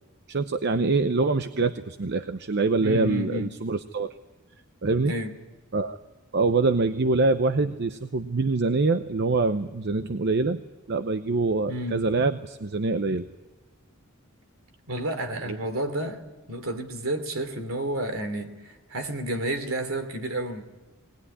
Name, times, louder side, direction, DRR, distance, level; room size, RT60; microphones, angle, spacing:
voice 1, 0.3-4.2 4.8-5.1 5.7-6.0 6.3-10.6 10.9-13.3 15.4-15.6, right 3 dB, 55° right, 0.7 m, -25 dB
voice 2, 2.8-3.5 5.0-5.3 11.7-12.0 14.9-16.2 16.5-20.6, right 1 dB, 75° right, 3.0 m, -30 dB
20.0 x 19.5 x 9.9 m
head